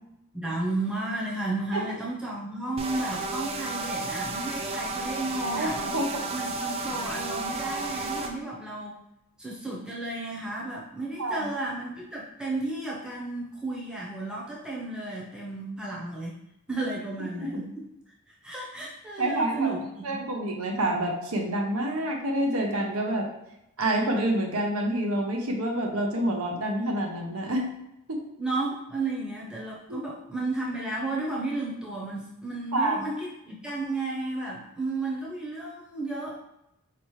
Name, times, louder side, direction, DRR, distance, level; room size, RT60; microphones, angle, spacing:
voice 1, 0.3-9.0 9.4-16.4 16.7-17.8 18.4-20.2 28.4-36.4, right 2 dB, 5° right, -5 dB, 0.7 m, -33 dB
sound 1, 2.8-8.3, right 3 dB, 25° right, 0.4 m, -32 dB
voice 2, 5.3-6.2 11.2-11.5 17.3-17.6 19.2-19.7 20.0-23.3 23.8-27.6 28.1-28.2 29.9-30.0 32.7-33.1, right 1 dB, 80° right, 1 dB, 0.8 m, -28 dB
4.6 x 2.9 x 3.2 m, 0.86 s
head